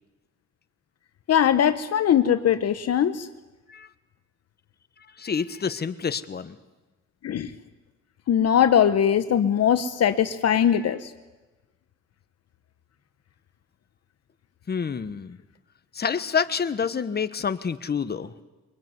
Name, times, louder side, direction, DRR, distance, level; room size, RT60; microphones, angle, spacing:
voice 1, 1.3-3.3 7.2-7.5 8.3-11.1, left 9 dB, 55° left, 11 dB, 1.0 m, -21 dB
voice 2, 5.2-6.6 10.7-10.9 14.7-15.4 15.9-18.3, left 6 dB, 30° left, 11 dB, 1.3 m, -28 dB
23.5 x 21.0 x 9.6 m, 1.2 s
cardioid pair, 90°, 30 cm